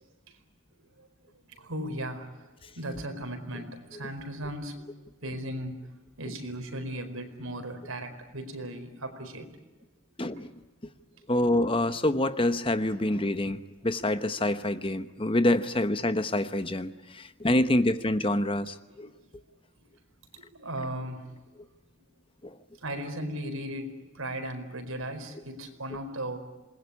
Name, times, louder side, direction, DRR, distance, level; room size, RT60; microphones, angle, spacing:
voice 1, 1.5-4.8 5.2-5.8 6.2-9.5 19.0-19.1 20.3-21.3 22.8-26.4, right 1 dB, 85° right, 6 dB, 4.7 m, -37 dB
voice 2, 11.3-13.6 13.8-19.1 22.4-22.6, left 1 dB, 25° left, 12 dB, 1.0 m, -26 dB
27.5 x 20.5 x 9.7 m, 1.2 s
head